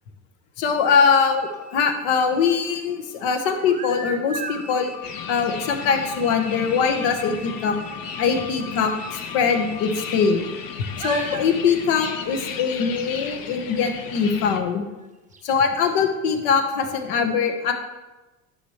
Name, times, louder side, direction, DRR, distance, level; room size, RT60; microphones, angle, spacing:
voice 1, 0.6-4.9 5.3-7.8 8.2-8.9 9.3-10.5 11.0-14.8 15.4-17.7, left 6 dB, 65° left, 5 dB, 1.4 m, -22 dB
sound 1, 0.9-3.4 4.3-12.6, left 4 dB, 20° left, 1.5 m, -42 dB
sound 2, 1.5-2.5 3.4-4.7 5.7-5.8 6.1-6.2 6.7-6.8 7.0-7.1 8.8-8.9 9.7-10.6 11.0-11.5 11.9-12.7 13.5-13.6 14.5-14.6 15.0-15.1 15.3-15.4, right 3 dB, 15° right, 0.8 m, -36 dB
sound 3, 5.0-14.6, left 7 dB, 50° left, 1.0 m, -35 dB
11.0 x 5.8 x 3.3 m, 1.1 s
hypercardioid pair, 90°, 45 cm